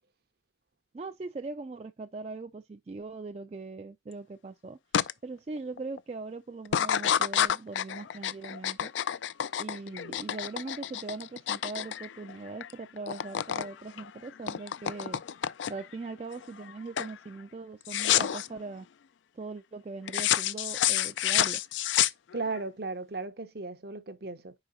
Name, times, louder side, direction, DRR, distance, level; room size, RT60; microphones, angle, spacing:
voice 1, 0.9-4.8 5.2-8.9 9.6-15.2 15.7-18.9 19.3-21.6, right 3 dB, 35° right, 0.3 m, -40 dB
sound 1, 4.9-5.1 5.6-6.0 6.6-12.7 13.0-13.7 14.0-15.9 16.4-16.7 17.0-17.2 17.9-18.5 20.1-22.6, left 10 dB, 75° left, 0.4 m, -29 dB
voice 2, 22.3-24.5, right 3 dB, 55° right, 0.7 m, -36 dB
4.9 x 4.8 x 4.0 m
head